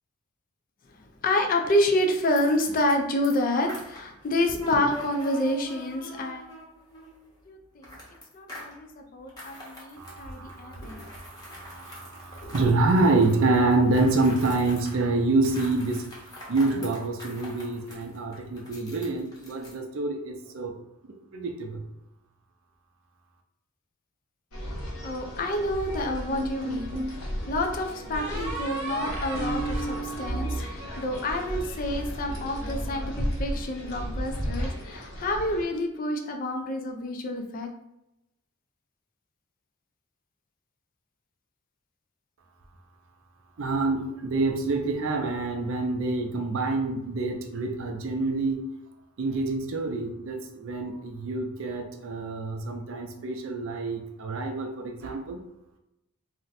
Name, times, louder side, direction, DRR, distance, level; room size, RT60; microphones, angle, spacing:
voice 1, 1.2-6.5 7.5-8.0 8.3-11.1 12.4-12.5 25.0-37.7, left 1 dB, 40° left, 4 dB, 0.4 m, -28 dB
sound 1, 2.2-3.0 3.2-7.2 7.8-8.8 9.3-15.0 15.4-19.7, equal, 20° left, 0.7 m, -44 dB
voice 2, 10.0-16.1 16.5-20.7 21.3-21.9 43.6-48.7 49.2-55.4, right 3 dB, 60° right, 3 dB, 0.5 m, -27 dB
sound 2, 24.5-35.6, equal, 90° left, 0.9 m, -35 dB
sound 3, 26.3-27.2 28.1-31.5, right 2 dB, 30° right, 0.8 m, -33 dB
2.5 x 2.1 x 3.9 m, 0.86 s
head